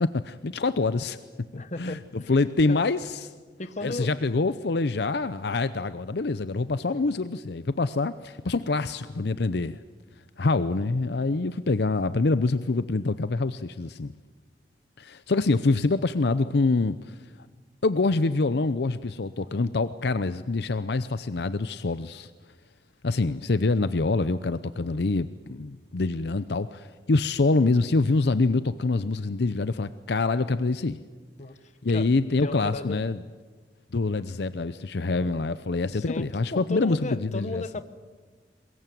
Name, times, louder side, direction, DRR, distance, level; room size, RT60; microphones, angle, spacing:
voice 1, 0.0-1.2 1.5-3.3 3.8-9.8 10.4-14.1 15.0-17.2 17.8-22.3 23.0-31.0 31.8-33.2 33.9-37.6, left 3 dB, 65° left, 13 dB, 0.6 m, -25 dB
voice 2, 1.5-2.0 2.7-2.8 3.6-4.1 6.9-7.1 24.8-25.0 31.4-31.6 31.9-32.1 32.4-33.0 35.0-35.3 35.9-37.8, left 2 dB, 40° left, 12 dB, 1.2 m, -35 dB
23.0 x 22.0 x 9.3 m, 1.4 s
head